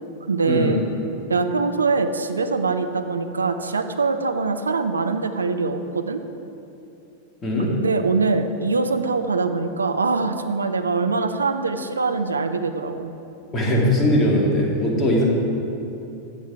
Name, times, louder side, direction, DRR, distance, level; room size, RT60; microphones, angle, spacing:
voice 1, 0.3-0.8 1.3-6.2 7.6-13.1, right 4 dB, 75° right, 8 dB, 0.6 m, -23 dB
voice 2, 7.4-7.7 13.5-15.2, left 1 dB, 20° left, -3 dB, 2.1 m, -20 dB
11.0 x 7.4 x 4.7 m, 2.9 s
figure-of-eight pair, 90°, 0 cm